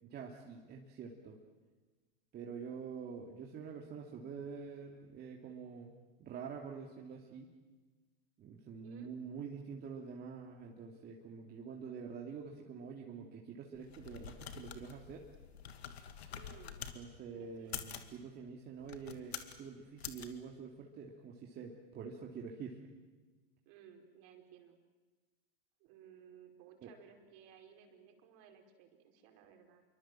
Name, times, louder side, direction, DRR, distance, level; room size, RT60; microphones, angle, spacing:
voice 1, 0.0-1.4 2.3-7.5 8.4-15.3 16.9-22.9 26.8-26.9, right 6 dB, 30° right, 0 dB, 2.8 m, -47 dB
sound 1, 13.7-17.0 17.6-18.1 18.8-19.6 20.0-20.3, left 8 dB, 80° left, 2.4 m, -46 dB
voice 2, 16.3-16.8 17.3-17.9 23.6-24.8 25.8-29.8, right 8 dB, 50° right, 3 dB, 5.0 m, -59 dB
27.5 x 24.0 x 7.7 m, 1.3 s
hypercardioid pair, 110°, 31 cm